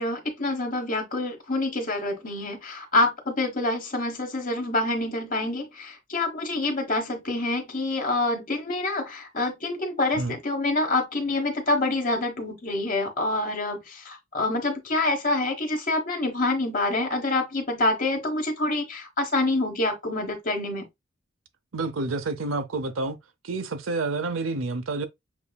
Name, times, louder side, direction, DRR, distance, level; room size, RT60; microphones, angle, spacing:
voice 1, 0.0-20.9, left 2 dB, 40° left, 1.3 m, -27 dB
voice 2, 21.7-23.2 23.4-25.1, right 3 dB, 75° right, 0.7 m, -29 dB
7.0 x 2.7 x 2.3 m
head